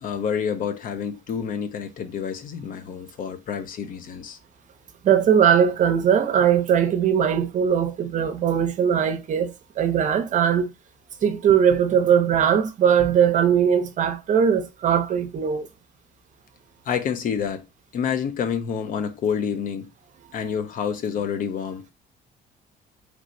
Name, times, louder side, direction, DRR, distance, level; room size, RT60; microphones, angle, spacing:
voice 1, 0.0-4.4 16.9-17.6 17.9-19.9 20.3-21.9, left 7 dB, 55° left, 0.7 m, -28 dB
voice 2, 5.0-10.7 11.2-15.7, right 8 dB, 45° right, 0.6 m, -20 dB
3.3 x 3.0 x 2.6 m
cardioid pair, 110°, 17 cm